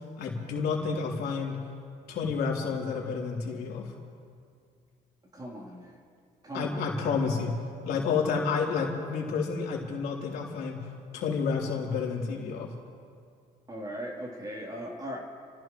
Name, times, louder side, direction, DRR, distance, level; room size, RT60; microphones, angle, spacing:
voice 1, 0.2-1.6 2.1-3.9 6.5-7.5 7.8-10.8 11.1-12.7, left 5 dB, 70° left, -3 dB, 3.4 m, -30 dB
voice 2, 5.3-6.0 6.4-6.8 13.7-15.2, equal, 25° right, -1 dB, 3.3 m, -38 dB
30.0 x 15.5 x 3.1 m, 2.3 s
cardioid pair, 110°, 17 cm